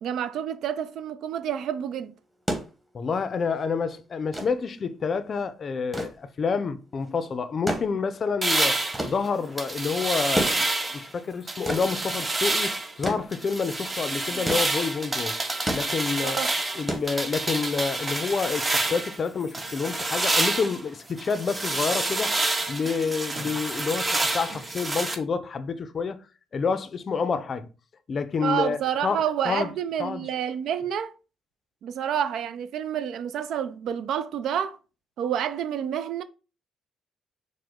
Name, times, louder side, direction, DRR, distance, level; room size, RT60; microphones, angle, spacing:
voice 1, 0.0-2.1 16.2-16.5 28.4-31.1 31.8-34.8 35.2-36.2, right 9 dB, 75° right, 0.4 m, -29 dB
sound 1, 2.2-17.7 19.0-19.1, equal, 5° right, 1.1 m, -34 dB
voice 2, 2.9-15.4 15.7-16.4 16.8-22.3 22.7-26.2 26.5-27.7 28.1-29.7 30.0-30.3, left 5 dB, 45° left, 0.4 m, -28 dB
sound 2, 8.4-11.1 11.5-12.9 13.3-19.2 19.5-25.2, right 2 dB, 25° right, 0.6 m, -28 dB
4.8 x 2.1 x 3.6 m
cardioid pair, 90°, 0 cm